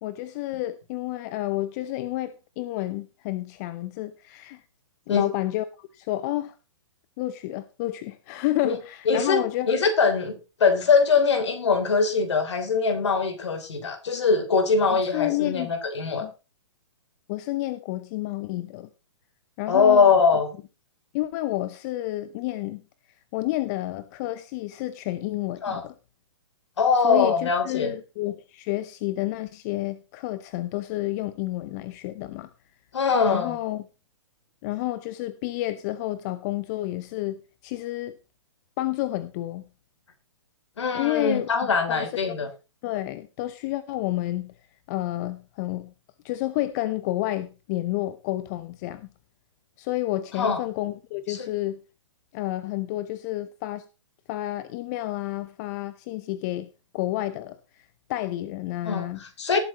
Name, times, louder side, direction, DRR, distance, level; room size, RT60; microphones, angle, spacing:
voice 1, 0.0-4.6 5.1-6.6 7.2-9.8 14.9-15.7 16.2-16.3 17.3-18.9 19.6-20.2 21.1-22.8 23.3-25.9 27.0-32.5 33.3-33.8 34.6-38.1 38.8-39.6 40.9-42.5 42.8-44.5 44.9-45.9 46.2-49.1 49.8-51.8 52.3-53.8 54.3-56.7 56.9-59.2, left 16 dB, 35° left, 14 dB, 0.7 m, -30 dB
voice 2, 9.1-16.3 19.7-20.5 25.6-25.8 26.8-27.9 32.9-33.6 40.8-42.5 50.4-50.6 51.3-51.4 58.8-59.6, left 5 dB, 65° left, 7 dB, 3.4 m, -22 dB
18.5 x 8.1 x 3.0 m, 0.29 s
figure-of-eight pair, 125°, 16 cm